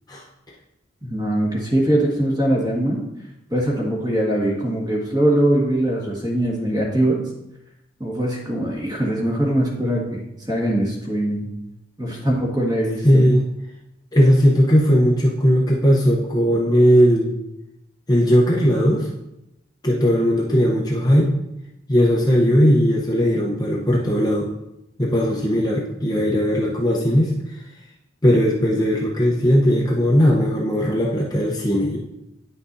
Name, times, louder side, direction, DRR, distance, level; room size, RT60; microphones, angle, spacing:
voice 1, 1.0-3.0 3.5-7.2 8.0-11.5 12.0-13.3, right 1 dB, 20° right, -3 dB, 1.7 m, -22 dB
voice 2, 13.0-13.5 14.1-17.3 18.1-19.1 19.8-21.3 21.9-24.5 25.0-27.6 28.2-32.0, equal, 20° left, -4 dB, 0.8 m, -18 dB
9.8 x 5.9 x 2.7 m, 0.88 s
head